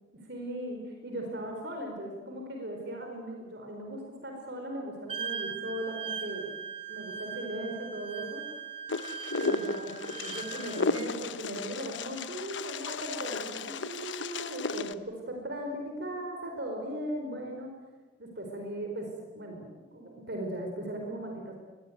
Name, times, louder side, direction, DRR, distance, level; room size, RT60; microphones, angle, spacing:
voice 1, 0.2-6.6 6.9-8.5 9.4-17.7 18.2-21.6, right 1 dB, 60° right, 2 dB, 4.6 m, -38 dB
Wind instrument woodwind instrument, 5.1-11.1, right 6 dB, 30° right, 1.5 m, -39 dB
Wind, 8.9-14.9, left 4 dB, 80° left, 1.1 m, -34 dB
23.0 x 20.0 x 9.4 m, 1.3 s
head